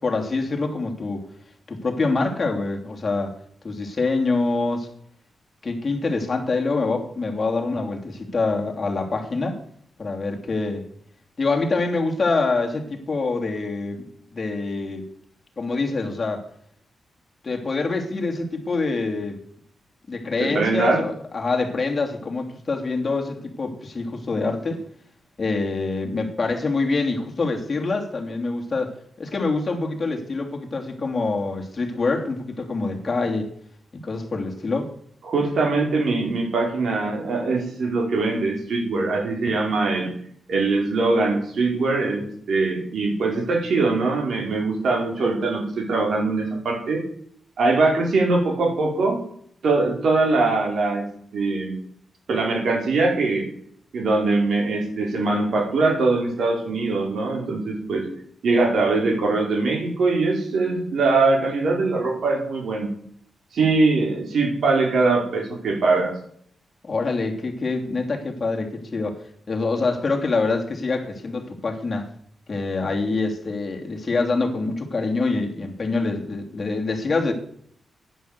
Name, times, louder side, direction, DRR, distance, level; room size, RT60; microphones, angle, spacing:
voice 1, 0.0-1.2 1.7-3.3 3.6-4.9 5.6-9.6 10.0-10.8 11.4-14.0 14.3-15.1 15.6-16.4 17.4-19.4 20.1-24.8 25.4-33.5 34.0-34.9 66.8-69.2 69.5-72.1 72.5-77.3, left 3 dB, 30° left, 3.0 m, -25 dB
voice 2, 20.4-21.0 35.2-40.1 40.5-47.0 47.6-49.2 49.6-51.0 51.3-51.7 52.3-53.5 53.9-58.0 58.4-62.9 63.5-66.1, right 3 dB, 65° right, 4.9 m, -22 dB
11.0 x 10.0 x 8.2 m
cardioid pair, 110°, 0 cm